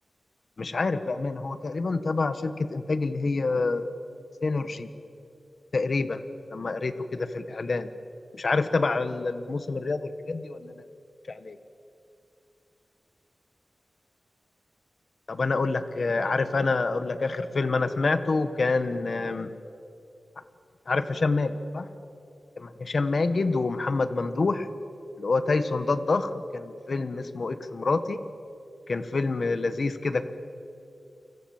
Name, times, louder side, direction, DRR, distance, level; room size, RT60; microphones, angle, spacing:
voice 1, 0.6-3.8 4.4-4.9 5.7-6.2 6.5-7.9 8.3-10.8 11.3-11.6 15.3-19.5 20.9-21.9 22.6-24.7 25.2-28.2 28.9-30.3, left 3 dB, 55° left, 10 dB, 1.5 m, -27 dB
29.5 x 25.5 x 7.4 m, 2.6 s
wide cardioid pair, 115°, 0 cm